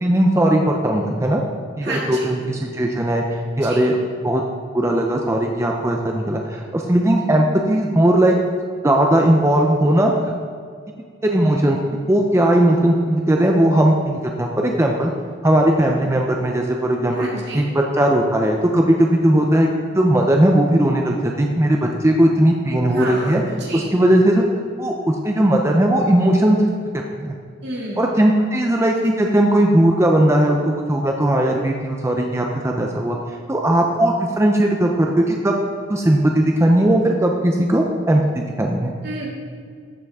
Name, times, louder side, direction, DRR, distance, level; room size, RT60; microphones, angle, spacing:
voice 1, 0.0-1.4 1.8-4.4 4.7-8.4 8.8-10.1 11.2-11.8 12.1-15.1 15.4-17.3 17.5-19.7 19.9-23.4 23.7-24.4 24.8-26.6 27.2-27.4 28.0-33.2 33.5-35.6 35.9-38.2 38.6-38.9, right 1 dB, 15° right, 1 dB, 0.5 m, -18 dB
voice 2, 1.8-2.3 3.6-3.9 17.1-17.6 22.9-23.9 27.6-28.1 39.0-39.3, right 1 dB, 60° right, -3 dB, 2.3 m, -29 dB
14.0 x 5.8 x 3.6 m, 2.1 s
head